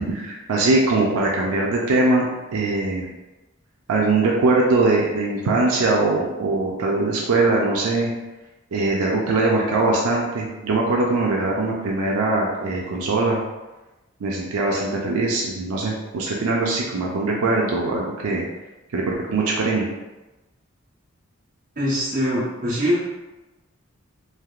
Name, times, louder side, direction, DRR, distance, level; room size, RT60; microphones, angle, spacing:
voice 1, 0.0-3.0 3.9-8.1 8.7-13.4 14.2-18.5 18.9-19.9, right 2 dB, 90° right, -2 dB, 0.5 m, -21 dB
voice 2, 21.7-23.0, equal, 40° right, -10 dB, 1.4 m, -22 dB
3.3 x 2.8 x 2.4 m, 1.1 s
head